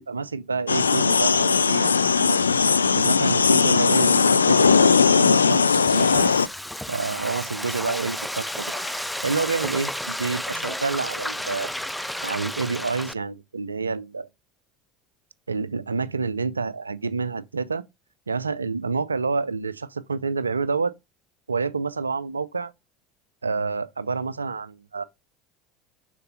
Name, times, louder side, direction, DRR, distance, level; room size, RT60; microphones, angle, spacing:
voice 1, 0.0-2.4 2.8-6.3 6.9-8.7 9.2-11.7 12.2-14.3 15.5-17.8 18.3-20.9 21.5-22.7 23.4-25.0, right 4 dB, 85° right, 0.5 m, -28 dB
sound 1, 0.7-6.5, left 5 dB, 80° left, 0.3 m, -19 dB
Frying (food), 5.3-13.1, equal, ahead, 0.5 m, -32 dB
Human voice, 6.8-7.4 7.8-9.9 10.4-11.4 11.7-12.0, left 2 dB, 25° left, 2.3 m, -46 dB
6.7 x 5.2 x 3.9 m
figure-of-eight pair, 70°, 0 cm